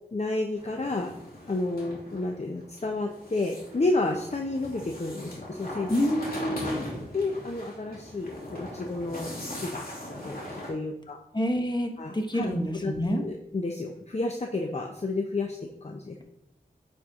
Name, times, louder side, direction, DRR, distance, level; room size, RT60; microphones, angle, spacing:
voice 1, 0.1-1.1 1.5-5.9 7.1-9.3 9.6-9.8 10.2-11.2 12.0-12.5 12.8-16.2, left 2 dB, 40° left, 3 dB, 0.8 m, -31 dB
sound 1, 0.5-10.7, left 1 dB, 65° left, 2.6 m, -40 dB
voice 2, 5.9-6.8 11.3-13.2, equal, 25° left, 3 dB, 1.3 m, -27 dB
9.4 x 4.5 x 3.6 m, 0.81 s
wide cardioid pair, 45°, 17 cm